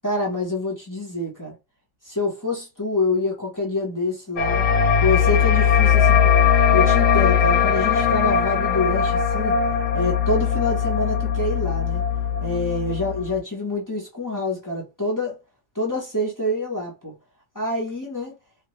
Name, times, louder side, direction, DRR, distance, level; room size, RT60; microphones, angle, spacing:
voice 1, 0.0-1.5 2.0-4.7 5.0-6.4 6.7-9.6 9.9-12.1 12.4-15.4 15.7-17.1 17.5-18.3, left 2 dB, 15° left, 0.8 m, -26 dB
sound 1, 4.4-13.4, left 7 dB, 70° left, 1.3 m, -19 dB
3.3 x 2.3 x 3.1 m
omnidirectional pair, 1.9 m